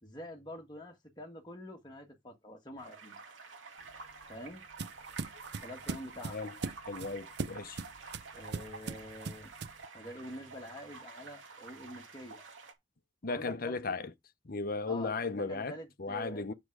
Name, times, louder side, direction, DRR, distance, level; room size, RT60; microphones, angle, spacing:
voice 1, 0.0-3.2 4.3-4.6 5.6-6.4 8.3-9.5 9.9-12.4 13.3-14.0 14.9-16.5, left 1 dB, 20° left, 1.7 m, -46 dB
sound 1, 2.8-12.7, right 4 dB, 75° right, 2.3 m, -50 dB
sound 2, 3.8-9.9, right 4 dB, 55° right, 0.6 m, -41 dB
voice 2, 6.9-7.8 13.2-14.1 14.5-15.7 16.0-16.5, left 3 dB, 45° left, 0.7 m, -35 dB
8.6 x 6.3 x 4.7 m
head